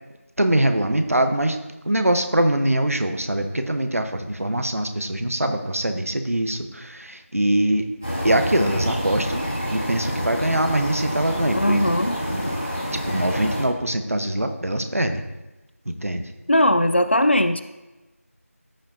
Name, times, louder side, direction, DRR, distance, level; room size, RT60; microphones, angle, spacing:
voice 1, 0.4-1.6 1.9-7.9 8.2-9.4 9.7-11.9 12.3-12.6 13.1-15.2 15.9-16.2, right 1 dB, 70° right, 7 dB, 1.0 m, -23 dB
sound 1, 8.0-13.7, equal, 5° right, 2.3 m, -27 dB
voice 2, 11.5-12.1 16.5-17.6, left 1 dB, 50° left, 10 dB, 0.5 m, -19 dB
14.0 x 5.7 x 2.6 m, 1.1 s
figure-of-eight pair, 175°, 8 cm